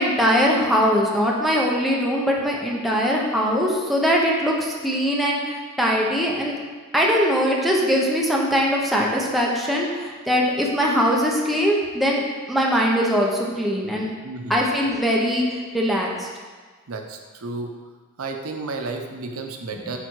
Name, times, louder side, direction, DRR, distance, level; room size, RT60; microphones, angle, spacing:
voice 1, 0.0-6.6 6.9-12.2 12.5-14.1 14.5-16.3, equal, ahead, -3 dB, 1.0 m, -21 dB
voice 2, 14.2-14.6 16.9-17.8 18.2-20.0, right 3 dB, 75° right, 4 dB, 0.8 m, -32 dB
8.8 x 4.4 x 4.7 m, 1.5 s
head